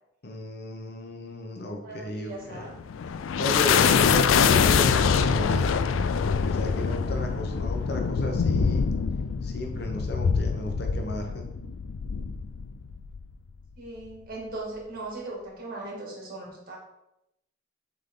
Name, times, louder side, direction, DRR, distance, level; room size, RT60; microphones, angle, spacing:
voice 1, 0.2-2.7 3.3-5.7 6.4-8.9 9.4-11.4, left 1 dB, 55° left, 3 dB, 0.8 m, -34 dB
voice 2, 1.8-2.8 13.8-16.8, right 2 dB, 50° right, -3 dB, 2.1 m, -38 dB
sound 1, 2.6-13.3, left 6 dB, 85° left, 0.4 m, -24 dB
7.0 x 3.6 x 3.8 m, 0.83 s
head